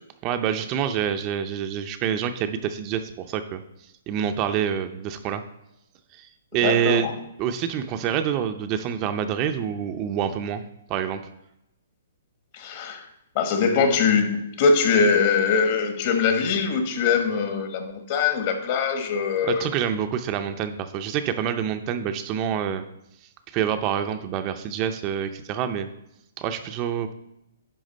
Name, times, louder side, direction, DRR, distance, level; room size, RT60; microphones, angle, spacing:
voice 1, 0.2-3.6 4.1-5.4 6.2-6.3 6.5-7.1 7.4-10.6 10.9-11.2 19.4-22.8 23.5-25.9 26.4-27.1, right 9 dB, 25° right, 8 dB, 0.5 m, -26 dB
voice 2, 6.6-7.1 12.5-13.0 13.3-19.7, left 5 dB, 40° left, 6 dB, 1.2 m, -22 dB
10.0 x 3.6 x 5.2 m, 0.83 s
hypercardioid pair, 155°, 0 cm